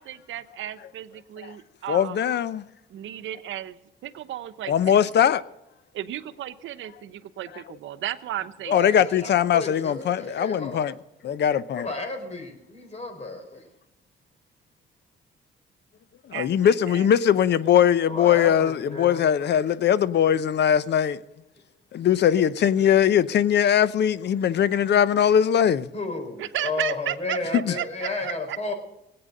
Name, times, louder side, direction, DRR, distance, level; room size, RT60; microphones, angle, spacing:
voice 1, 0.0-2.2 2.9-5.0 5.9-8.8 16.3-17.1 26.4-28.7, right 12 dB, 75° right, 0.9 m, -34 dB
voice 2, 1.9-2.6 4.7-5.4 8.7-10.9 11.2-11.9 16.3-21.2 21.9-25.9 27.5-27.7, left 9 dB, 60° left, 0.7 m, -21 dB
voice 3, 8.7-10.9 11.3-11.4 11.7-13.6 18.1-19.3 25.9-28.7, left 3 dB, 35° left, 4.3 m, -33 dB
18.0 x 8.8 x 6.5 m
cardioid pair, 90°, 20 cm